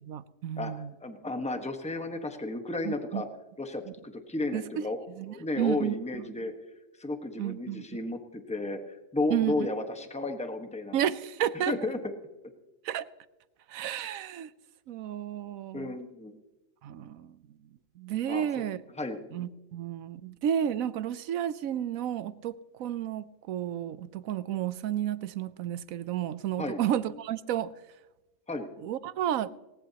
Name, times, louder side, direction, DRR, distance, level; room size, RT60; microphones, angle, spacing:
voice 1, 0.0-0.9 2.8-3.2 3.9-4.0 4.5-4.6 5.2-6.2 7.4-7.9 9.3-9.7 10.9-11.7 12.8-13.0 13.7-14.5 14.9-15.9 16.8-17.4 18.0-18.8 19.3-27.7 28.8-29.5, right 10 dB, 90° right, 16 dB, 1.1 m, -32 dB
voice 2, 1.0-3.3 3.6-5.0 5.2-6.5 7.0-11.0 11.7-12.0 15.7-16.4 18.3-18.6 19.0-19.2 26.6-26.8 28.5-28.7, left 2 dB, 5° left, 6 dB, 1.2 m, -33 dB
19.0 x 19.0 x 2.9 m, 1.1 s
omnidirectional pair, 1.4 m